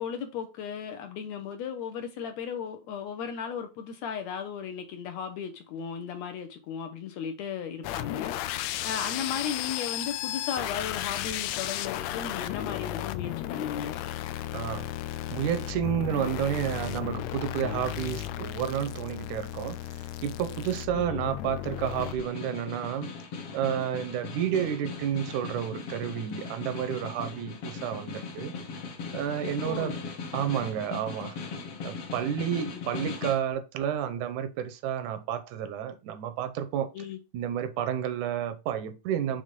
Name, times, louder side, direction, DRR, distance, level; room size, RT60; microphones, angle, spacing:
voice 1, 0.0-14.0 20.9-21.2 29.6-30.0 30.3-30.5 32.7-32.9 36.9-37.2, left 7 dB, 70° left, 1.8 m, -36 dB
sound 1, 7.8-22.2, left 13 dB, 90° left, 1.5 m, -34 dB
voice 2, 14.5-14.9 15.3-23.1 23.5-28.5 29.1-30.0 30.3-31.4 31.8-36.9 37.3-39.4, right 9 dB, 80° right, 2.0 m, -31 dB
Snare drum, 21.7-33.5, left 5 dB, 55° left, 1.9 m, -39 dB
6.4 x 3.6 x 5.2 m
omnidirectional pair, 3.6 m